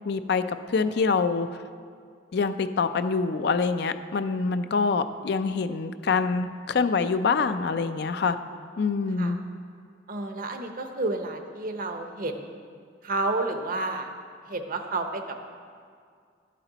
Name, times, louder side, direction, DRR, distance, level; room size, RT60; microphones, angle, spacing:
voice 1, 0.1-1.5 2.3-8.4 8.8-9.4, left 4 dB, 65° left, 10 dB, 0.4 m, -25 dB
voice 2, 10.1-12.6 13.0-14.1 14.5-15.5, right 2 dB, 50° right, 6 dB, 0.8 m, -31 dB
11.5 x 8.4 x 4.0 m, 2.2 s
head